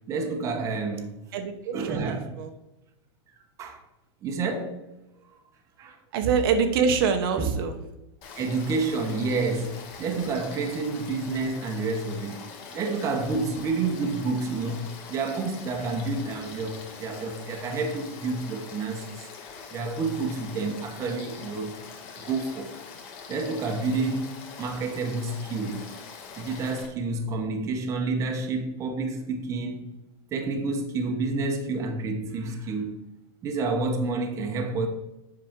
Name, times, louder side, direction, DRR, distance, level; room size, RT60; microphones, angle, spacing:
voice 1, 0.1-1.2 1.7-2.3 3.6-3.8 4.2-4.8 5.8-6.0 7.4-7.5 8.4-12.5 12.7-19.3 19.7-21.7 22.2-22.8 23.3-25.9 26.4-29.8 30.3-33.0 33.4-34.9, right 3 dB, 20° right, 0.9 m, -29 dB
voice 2, 1.3-2.5 6.1-7.8 20.5-20.8, right 6 dB, 55° right, 0.9 m, -25 dB
Frog / Stream, 8.2-26.9, left 5 dB, 40° left, 1.6 m, -43 dB
7.7 x 5.9 x 3.6 m
supercardioid pair, 160°, 14 cm